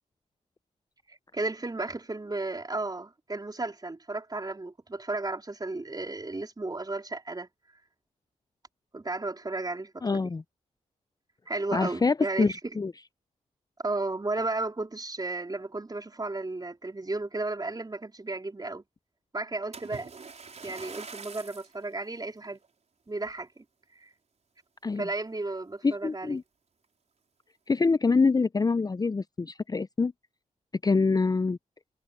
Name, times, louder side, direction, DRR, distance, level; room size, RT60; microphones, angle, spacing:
voice 1, 1.1-7.5 8.9-10.3 11.5-12.5 13.8-18.8 19.3-20.1 20.6-22.6 23.1-23.6 24.0-24.1 25.0-26.4, right 2 dB, 25° right, 3.8 m, -34 dB
voice 2, 10.0-10.4 11.7-12.9 24.8-25.1 25.8-26.4 27.7-30.1 30.8-31.6, left 4 dB, 25° left, 0.5 m, -25 dB
Splash splatter, 19.7-21.8 22.4-22.7 23.3-23.4, right 5 dB, 50° right, 4.8 m, -44 dB
supercardioid pair, 45°, 14 cm